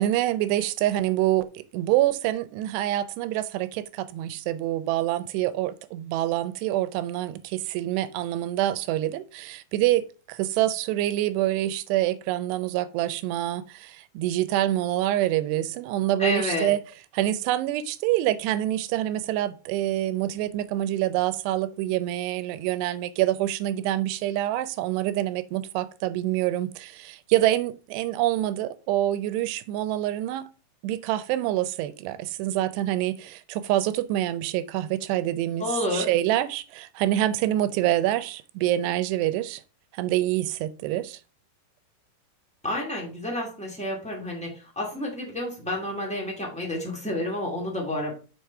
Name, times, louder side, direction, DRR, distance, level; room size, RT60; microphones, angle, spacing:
voice 1, 0.0-16.8 17.1-30.5 30.8-39.6 39.9-41.2, right 14 dB, 90° right, 2.8 m, -26 dB
voice 2, 16.2-16.7 35.6-36.1 42.6-48.1, left 1 dB, 5° left, 0.8 m, -30 dB
6.5 x 5.7 x 4.6 m
omnidirectional pair, 4.7 m